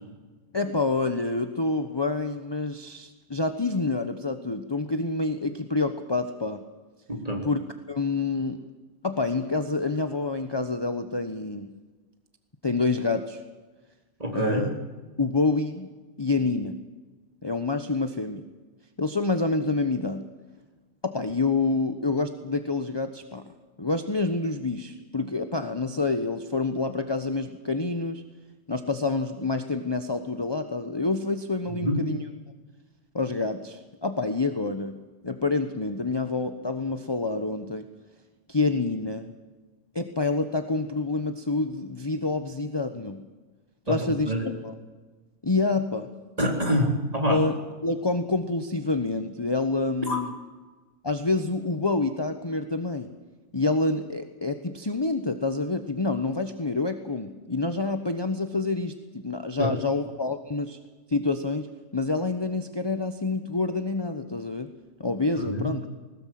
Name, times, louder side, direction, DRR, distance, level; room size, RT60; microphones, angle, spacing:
voice 1, 0.5-6.6 7.4-7.6 7.9-8.6 9.0-11.7 12.6-13.4 14.3-14.7 15.2-15.9 16.2-16.8 17.4-18.4 19.0-20.3 21.0-23.5 23.8-28.2 28.7-32.2 33.1-37.8 38.5-39.3 39.9-43.2 43.9-44.3 44.6-44.7 45.4-46.1 47.3-50.3 51.0-53.1 53.5-60.8 61.1-61.7 61.9-64.7 65.0-65.9, left 3 dB, 20° left, 7 dB, 1.0 m, -27 dB
voice 2, 7.1-7.4 14.2-14.6 31.7-32.0 43.9-44.0 44.3-44.5 46.4-47.4 50.1-50.2 59.6-59.7 65.4-65.7, equal, 30° right, 1 dB, 4.0 m, -26 dB
20.5 x 19.5 x 7.7 m, 1.3 s
omnidirectional pair, 1.3 m